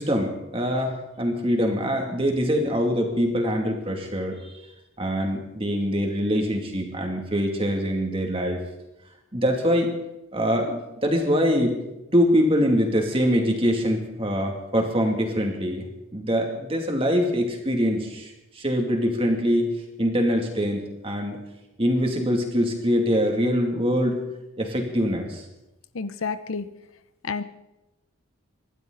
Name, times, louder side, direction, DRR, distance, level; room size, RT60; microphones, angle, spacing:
voice 1, 0.0-4.6 5.0-8.6 9.3-9.9 10.3-11.8 12.1-15.9 16.1-19.7 20.0-21.4 21.8-24.2 24.6-25.5, equal, 25° right, 2 dB, 2.5 m, -24 dB
voice 2, 25.9-26.7 27.2-27.4, left 5 dB, 70° left, 13 dB, 0.8 m, -29 dB
26.0 x 12.0 x 4.0 m, 0.97 s
head